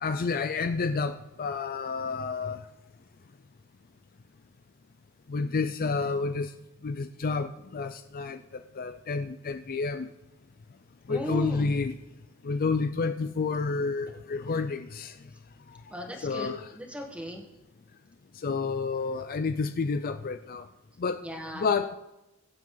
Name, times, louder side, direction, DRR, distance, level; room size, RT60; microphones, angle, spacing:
voice 1, 0.0-2.6 5.3-6.5 6.8-10.1 11.1-12.0 12.4-15.1 16.2-16.7 18.4-20.7 21.0-21.2 21.5-21.9, left 4 dB, 40° left, 10 dB, 0.4 m, -30 dB
voice 2, 11.1-11.7 15.9-17.4 21.2-21.7, equal, 5° right, 2 dB, 1.7 m, -37 dB
22.0 x 7.6 x 3.9 m, 0.96 s
head